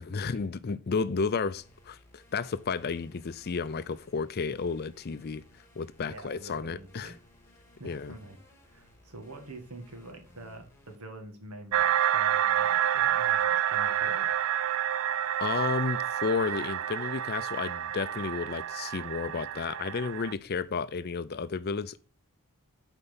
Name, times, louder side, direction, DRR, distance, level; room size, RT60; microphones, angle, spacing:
voice 1, 0.0-5.4 5.8-7.1 7.8-8.1 15.4-22.0, left 5 dB, 45° left, 0.5 m, -32 dB
sound 1, 1.6-11.0, left 1 dB, 10° left, 1.9 m, -59 dB
voice 2, 6.1-7.2 7.8-8.4 8.7-14.3, right 2 dB, 80° right, 1.9 m, -46 dB
sound 2, 11.7-20.3, right 10 dB, 65° right, 0.4 m, -28 dB
7.8 x 4.5 x 5.5 m
head